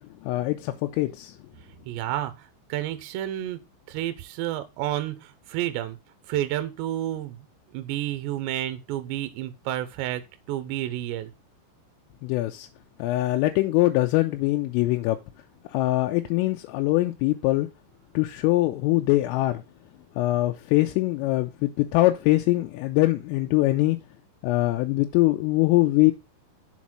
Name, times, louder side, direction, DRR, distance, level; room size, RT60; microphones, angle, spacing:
voice 1, 0.2-1.3 12.2-12.7 13.0-15.2 15.7-17.7 18.1-19.6 20.2-24.0 24.4-26.1, left 18 dB, 85° left, 3.2 m, -23 dB
voice 2, 1.9-6.0 6.3-7.4 7.7-10.2 10.5-11.3, right 13 dB, 75° right, 2.8 m, -30 dB
7.3 x 4.2 x 6.1 m
omnidirectional pair, 5.8 m